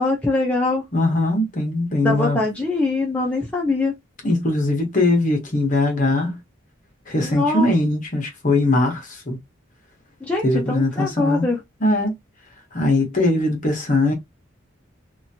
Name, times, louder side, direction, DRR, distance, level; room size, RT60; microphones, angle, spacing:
voice 1, 0.0-0.8 2.0-3.9 7.2-7.7 10.2-11.6, left 2 dB, 5° left, 0.6 m, -22 dB
voice 2, 0.9-2.4 4.2-6.4 7.1-9.4 10.4-11.5 11.8-12.1 12.7-14.1, left 2 dB, 40° left, 1.1 m, -20 dB
2.9 x 2.5 x 2.8 m
head